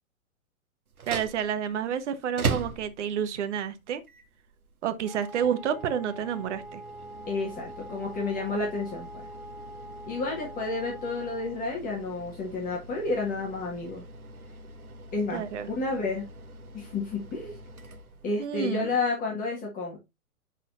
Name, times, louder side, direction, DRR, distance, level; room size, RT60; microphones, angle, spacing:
sound 1, 0.9-18.7, right 4 dB, 90° right, 1.1 m, -41 dB
voice 1, 1.1-4.0 4.8-6.8 15.3-15.7 18.4-19.0, right 8 dB, 55° right, 1.1 m, -30 dB
Wind instrument woodwind instrument, 5.0-11.6, right 1 dB, ahead, 1.1 m, -44 dB
voice 2, 7.3-9.3 10.1-14.0 15.1-15.4 15.7-16.3 16.7-17.6 18.2-20.0, left 3 dB, 20° left, 1.7 m, -31 dB
10.5 x 4.2 x 2.5 m
hypercardioid pair, 125°, 42 cm